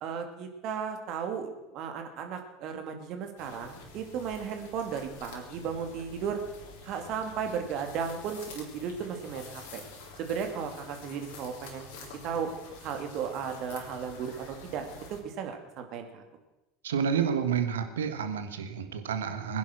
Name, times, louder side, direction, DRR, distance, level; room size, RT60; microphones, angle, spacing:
voice 1, 0.0-6.4 6.8-9.8 10.2-11.8 12.2-12.5 12.8-14.8 15.1-16.2, right 7 dB, 50° right, 5 dB, 2.7 m, -35 dB
sound 1, 3.4-15.2, left 3 dB, 65° left, 3.6 m, -48 dB
voice 2, 16.8-19.6, right 7 dB, 75° right, 8 dB, 1.6 m, -29 dB
21.5 x 10.5 x 6.3 m, 1.0 s
figure-of-eight pair, 75°, 0 cm